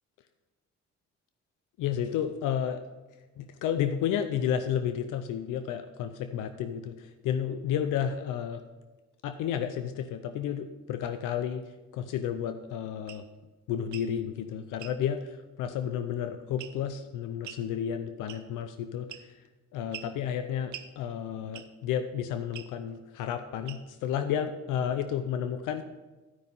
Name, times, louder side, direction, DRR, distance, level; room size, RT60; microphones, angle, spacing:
voice 1, 1.8-2.8 3.4-8.6 9.2-11.6 11.9-13.2 13.7-19.3 19.7-25.8, left 9 dB, 90° left, 9 dB, 0.6 m, -32 dB
sound 1, 13.1-13.3 13.8-14.1 14.8-15.0 16.6-16.9 17.4-17.7 18.3-18.6 19.1-19.5 19.9-20.2 20.7-20.9 21.5-21.8 22.5-22.7 23.7-24.0, right 10 dB, 75° right, 0.8 m, -44 dB
13.0 x 5.3 x 5.4 m, 1.2 s
cardioid pair, 90°, 30 cm